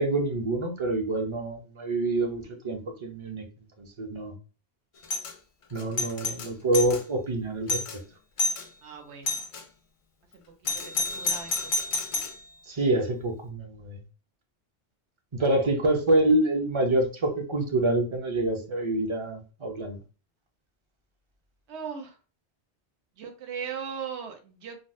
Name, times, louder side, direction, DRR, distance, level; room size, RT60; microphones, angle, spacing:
voice 1, 0.0-3.4 3.8-4.3 5.7-7.8 12.7-14.0 15.3-20.0, right 2 dB, 35° right, 3 dB, 0.5 m, -26 dB
Doorbell, 5.0-5.3 5.8-7.0 7.4-7.5 7.7-8.0 8.4-8.7 9.3-9.6 10.6-12.4, left 3 dB, 65° left, 0.3 m, -29 dB
voice 2, 8.8-9.3 11.0-11.7 21.7-22.1 23.2-24.8, right 7 dB, 75° right, 4 dB, 1.0 m, -38 dB
3.9 x 2.0 x 2.5 m, 0.34 s
omnidirectional pair, 1.1 m